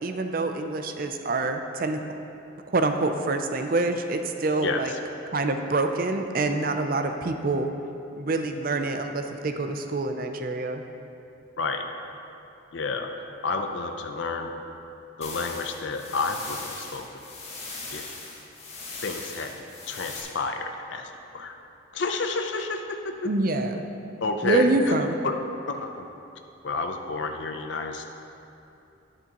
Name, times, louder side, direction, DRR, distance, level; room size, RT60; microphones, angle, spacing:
voice 1, 0.0-2.0 2.7-4.9 5.3-7.7 8.2-10.8 23.2-23.8 24.4-25.2, right 2 dB, 45° right, 6 dB, 0.5 m, -26 dB
voice 2, 12.7-13.1 13.4-14.5 15.2-17.2 17.9-18.2 19.0-21.6 21.9-23.3 24.2-25.3 25.7-26.1 26.6-28.1, left 4 dB, 70° left, 4 dB, 0.6 m, -30 dB
sound 1, 15.2-20.2, left 3 dB, 30° left, 1.7 m, -39 dB
10.5 x 10.0 x 3.0 m, 2.8 s
head